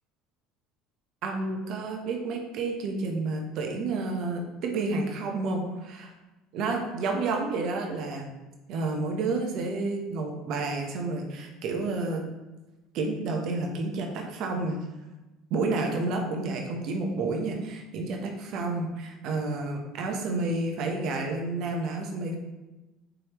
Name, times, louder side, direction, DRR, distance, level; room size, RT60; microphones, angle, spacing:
voice 1, 1.2-6.1 6.5-8.3 8.7-12.2 12.9-14.8 15.5-22.4, right 3 dB, 60° right, 2 dB, 0.9 m, -30 dB
4.9 x 3.1 x 3.0 m, 1.1 s
supercardioid pair, 95°, 0 cm